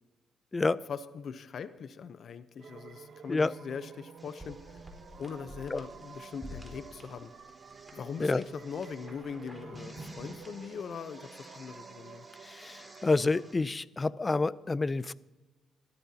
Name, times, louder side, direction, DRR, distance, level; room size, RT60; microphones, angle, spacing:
voice 1, 0.9-4.8 5.2-7.3 7.9-12.2, left 6 dB, 55° left, 12 dB, 0.7 m, -41 dB
sound 1, 2.6-13.5, right 6 dB, 55° right, 0.9 m, -51 dB
sound 2, 4.2-13.5, equal, 5° right, 4.0 m, -50 dB
voice 2, 12.4-15.1, left 3 dB, 25° left, 18 dB, 0.5 m, -28 dB
20.5 x 14.0 x 2.8 m, 1.1 s
cardioid pair, 90°, 0 cm